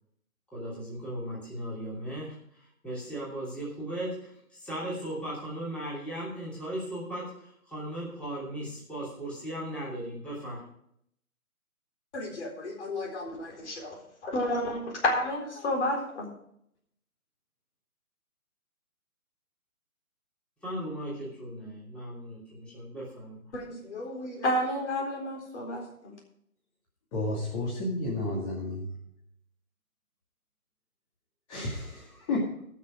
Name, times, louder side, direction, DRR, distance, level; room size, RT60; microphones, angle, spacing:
voice 1, 0.5-10.6 20.6-23.5, right 1 dB, 5° left, -9 dB, 2.9 m, -37 dB
voice 2, 12.1-14.0 14.2-16.3 23.5-26.1, left 1 dB, 50° left, 1 dB, 4.1 m, -31 dB
voice 3, 27.1-29.0 31.5-32.7, left 2 dB, 25° left, -4 dB, 2.3 m, -32 dB
18.0 x 6.6 x 5.0 m, 0.70 s
hypercardioid pair, 155°, 43 cm